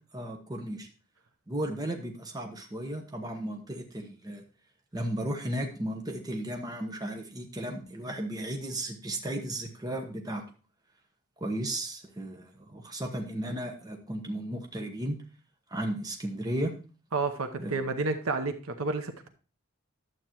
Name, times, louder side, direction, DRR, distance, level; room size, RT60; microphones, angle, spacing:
voice 1, 0.1-0.9 1.5-4.4 4.9-10.4 11.4-15.2 15.7-16.7 17.6-17.8, right 1 dB, 20° right, 3 dB, 0.9 m, -34 dB
voice 2, 17.1-19.3, right 3 dB, 85° right, 7 dB, 0.8 m, -30 dB
11.5 x 7.8 x 3.0 m, 0.35 s
head